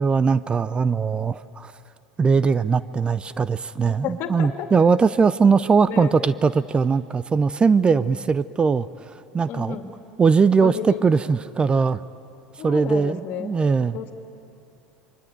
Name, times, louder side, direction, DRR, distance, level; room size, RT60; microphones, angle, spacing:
voice 1, 0.0-1.7 2.2-9.8 10.2-12.0 12.6-14.0, right 5 dB, 25° right, 17 dB, 0.6 m, -20 dB
voice 2, 3.9-4.7 5.8-6.3 7.7-8.2 9.5-9.9 10.6-11.1 11.7-11.8 12.6-13.5 13.9-14.1, left 8 dB, 55° left, 5 dB, 2.4 m, -32 dB
27.5 x 23.0 x 9.2 m, 2.8 s
hypercardioid pair, 80°, 4 cm